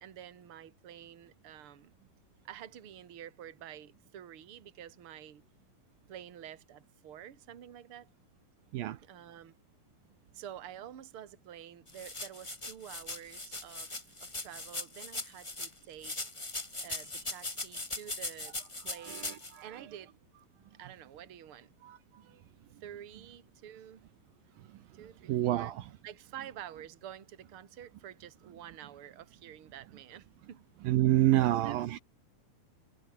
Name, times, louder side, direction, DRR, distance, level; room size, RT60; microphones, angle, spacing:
voice 1, 0.0-1.9 2.4-5.4 6.1-8.1 9.0-9.6 10.3-16.2 16.8-18.6 18.8-19.3 19.6-20.1 20.8-21.7 22.8-24.0 24.9-25.7 26.0-30.6 31.3-31.8, right 10 dB, 45° right, 2.4 m, -49 dB
sound 1, 11.9-15.7 16.0-19.5, left 2 dB, 40° left, 0.4 m, -40 dB
voice 2, 19.0-19.7 21.8-22.0 25.3-25.9 30.8-32.0, right 14 dB, 75° right, 2.7 m, -28 dB
omnidirectional pair, 4.4 m